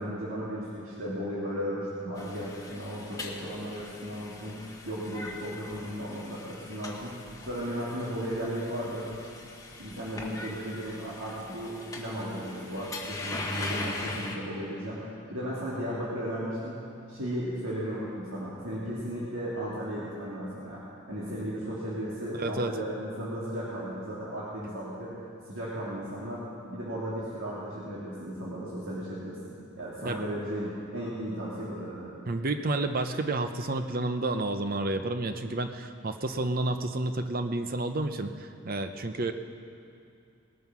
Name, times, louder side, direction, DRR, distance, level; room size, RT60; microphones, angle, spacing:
voice 1, 0.0-7.2 7.5-9.1 9.8-16.8 17.1-25.1 25.5-32.2, equal, 70° right, -8 dB, 2.7 m, -35 dB
sound 1, 2.2-14.4, left 2 dB, 15° left, 1.2 m, -41 dB
voice 2, 22.4-22.7 30.0-30.2 32.3-39.3, right 2 dB, 45° right, 8 dB, 0.7 m, -30 dB
19.5 x 9.3 x 6.1 m, 2.5 s
head